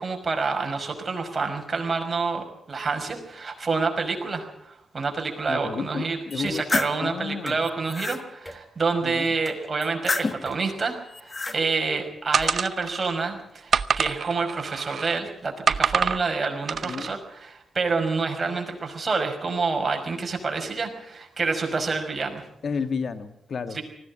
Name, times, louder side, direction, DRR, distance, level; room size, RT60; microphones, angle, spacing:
voice 1, 0.0-22.4 23.7-23.8, right 4 dB, 40° right, 4 dB, 5.5 m, -28 dB
voice 2, 5.5-6.6 7.0-7.6 9.0-9.3 16.8-17.2 22.6-23.8, left 5 dB, 60° left, 9 dB, 1.8 m, -31 dB
sound 1, 6.3-7.0 7.6-8.2 9.8-10.5 11.1-11.6, left 3 dB, 40° left, 1.5 m, -29 dB
sound 2, 6.4-6.6 7.5-7.6 8.4-8.6 9.4-9.7 10.4-10.6 11.5-11.6 12.3-12.6, left 1 dB, 15° left, 2.8 m, -39 dB
sound 3, 12.3-13.1 13.7-15.2 15.7-16.2 16.7-17.1, right 6 dB, 60° right, 0.7 m, -26 dB
19.5 x 16.0 x 8.6 m, 0.78 s
cardioid pair, 65°, 0 cm